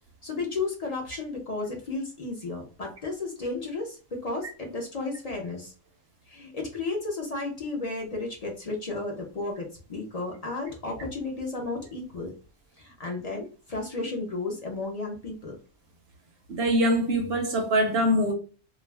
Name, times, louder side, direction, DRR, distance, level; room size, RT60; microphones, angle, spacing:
voice 1, 0.2-5.7 6.3-12.3 12.8-15.6, left 3 dB, 50° left, 0.4 m, -33 dB
voice 2, 16.5-18.3, equal, 60° right, 0.7 m, -23 dB
2.4 x 2.2 x 3.2 m
omnidirectional pair, 1.4 m